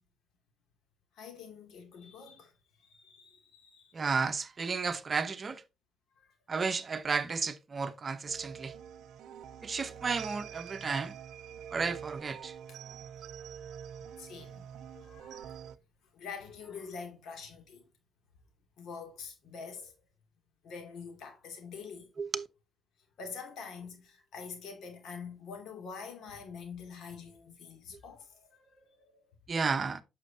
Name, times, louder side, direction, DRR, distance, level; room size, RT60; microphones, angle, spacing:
voice 1, 1.1-2.5 2.8-3.9 6.2-6.3 12.7-12.8 14.0-14.7 14.9-15.6 16.1-17.9 18.8-19.9 20.6-22.1 23.2-29.3, left 5 dB, 75° left, 2.6 m, -46 dB
voice 2, 3.9-5.6 6.5-8.7 9.6-11.2 11.7-12.5 22.2-22.5 29.5-30.0, right 5 dB, 40° right, 0.9 m, -33 dB
sound 1, 8.3-15.8, right 8 dB, 80° right, 0.5 m, -46 dB
8.9 x 6.4 x 2.8 m
cardioid pair, 90°, 0 cm